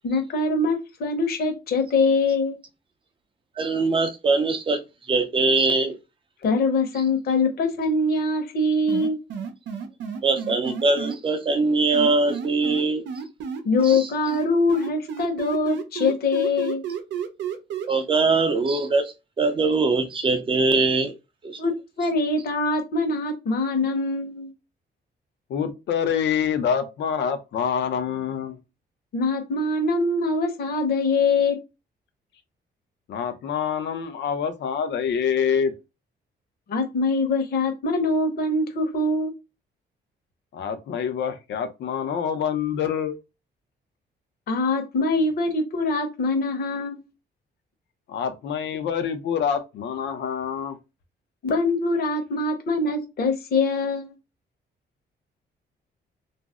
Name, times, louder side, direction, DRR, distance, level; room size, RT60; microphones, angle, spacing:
voice 1, 0.0-2.6 6.4-9.2 13.6-16.8 21.6-21.7 22.0-24.5 29.1-31.6 36.7-39.3 44.5-47.0 51.4-54.1, left 3 dB, 55° left, 0.9 m, -23 dB
voice 2, 3.6-4.8 5.1-6.0 10.2-13.0 13.8-14.1 17.9-21.1 21.4-21.6, right 3 dB, 30° right, 0.5 m, -22 dB
sound 1, 8.9-11.2 11.9-14.0 14.3-17.9, right 6 dB, 85° right, 0.6 m, -31 dB
voice 3, 25.5-28.6 33.1-35.7 40.5-43.2 48.1-50.8, left 7 dB, 75° left, 0.6 m, -26 dB
2.5 x 2.0 x 3.5 m
cardioid pair, 155°, 18 cm